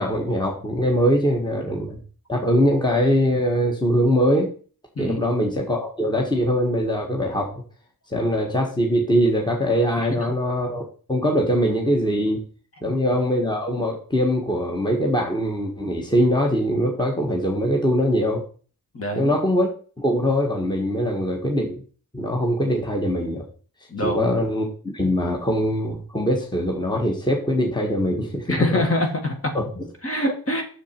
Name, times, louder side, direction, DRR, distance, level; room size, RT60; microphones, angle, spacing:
voice 1, 0.0-2.0 2.3-4.5 5.0-7.6 8.1-10.8 11.1-12.4 12.8-18.4 19.1-21.8 22.1-23.5 24.0-28.8 29.5-29.8, equal, 10° left, 0 dB, 1.4 m, -22 dB
voice 2, 18.9-19.4 23.9-24.3 28.5-29.6 30.0-30.6, left 1 dB, 40° left, 3 dB, 2.0 m, -25 dB
7.1 x 6.9 x 4.5 m, 0.42 s
wide cardioid pair, 100°, 37 cm